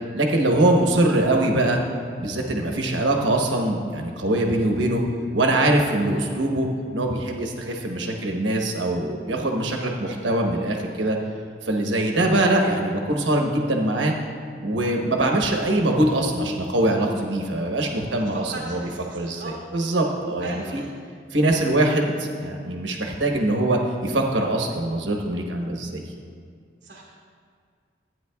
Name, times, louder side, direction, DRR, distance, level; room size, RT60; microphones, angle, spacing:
voice 1, 0.1-1.8 2.2-5.0 5.3-6.7 6.9-11.2 11.6-14.1 14.6-18.8 19.1-20.8 21.3-26.0, right 1 dB, 85° right, 1 dB, 1.1 m, -23 dB
voice 2, 18.1-19.5 20.4-21.0 26.8-27.0, right 2 dB, 55° right, -5 dB, 1.3 m, -39 dB
14.5 x 9.2 x 2.3 m, 2.1 s
head